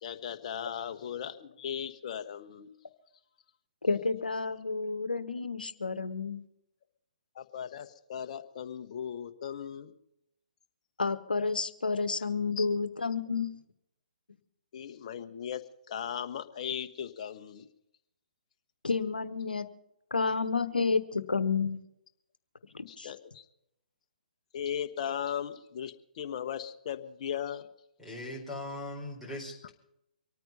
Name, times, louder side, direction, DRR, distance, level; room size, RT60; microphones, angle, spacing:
voice 1, 0.0-2.7 7.3-9.9 12.6-12.7 14.7-17.7 22.9-23.4 24.5-27.7, left 9 dB, 45° left, 8 dB, 1.1 m, -37 dB
voice 2, 3.8-6.4 11.0-13.5 18.8-19.7 20.1-21.8 22.7-23.1, left 4 dB, 80° left, 11 dB, 1.2 m, -30 dB
voice 3, 28.0-29.7, left 1 dB, 5° right, -2 dB, 4.6 m, -40 dB
24.5 x 9.2 x 5.5 m, 0.80 s
figure-of-eight pair, 135°, 5 cm